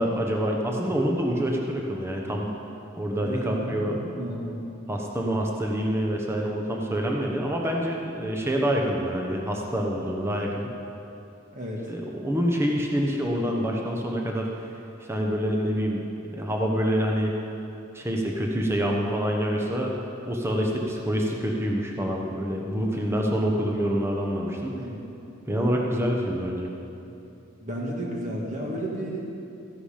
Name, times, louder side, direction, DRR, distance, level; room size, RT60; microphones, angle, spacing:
voice 1, 0.0-2.5 2.9-4.0 4.9-10.7 11.9-14.5 15.0-16.0 16.3-17.3 17.9-19.9 20.2-24.9 25.5-26.7, equal, 10° right, 0 dB, 1.0 m, -26 dB
voice 2, 3.2-4.6 11.5-11.9 24.7-25.0 27.6-29.3, right 1 dB, 35° right, -3 dB, 1.8 m, -32 dB
14.5 x 11.0 x 5.1 m, 2.8 s
head